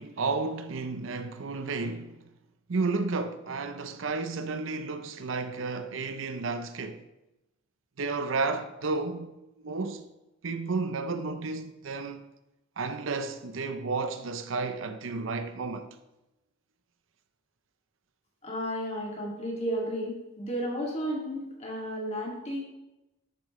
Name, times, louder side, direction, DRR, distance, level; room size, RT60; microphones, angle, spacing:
voice 1, 0.0-2.2 2.7-7.0 8.0-9.3 9.6-10.1 10.4-12.3 12.8-15.9, right 3 dB, 70° right, 0.6 m, -32 dB
voice 2, 18.4-22.7, equal, 30° left, 2.2 m, -33 dB
11.0 x 8.4 x 3.2 m
head